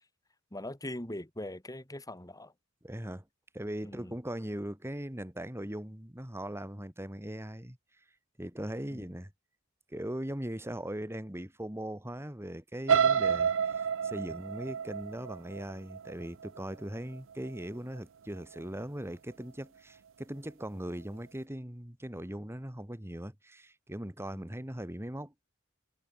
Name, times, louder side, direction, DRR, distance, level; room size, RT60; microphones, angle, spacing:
voice 1, 0.5-2.5 3.8-4.1 8.9-9.1 24.3-24.5, left 1 dB, 15° left, 2.9 m, -41 dB
voice 2, 2.8-3.2 3.5-7.8 8.4-9.3 9.9-25.3, right 1 dB, 10° right, 2.0 m, -39 dB
sound 1, 12.9-16.8 17.3-17.6 18.0-18.1, right 7 dB, 65° right, 0.5 m, -29 dB
head